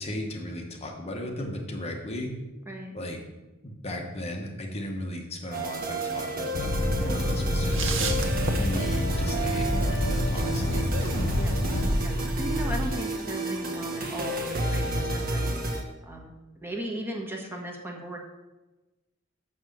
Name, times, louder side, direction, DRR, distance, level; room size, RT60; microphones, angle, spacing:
voice 1, 0.0-2.3 2.9-3.2 3.6-8.0 8.6-10.9, left 1 dB, 30° left, 1 dB, 1.2 m, -36 dB
sound 1, 5.5-15.8, right 2 dB, 45° right, 1.4 m, -32 dB
Fire, 6.5-11.9, left 1 dB, 70° left, 1.0 m, -29 dB
sound 2, 6.7-13.0, right 1 dB, 70° right, 1.0 m, -30 dB
voice 2, 12.0-15.5 16.0-18.2, equal, 10° right, -1 dB, 1.4 m, -37 dB
6.5 x 6.2 x 7.5 m, 1.1 s
head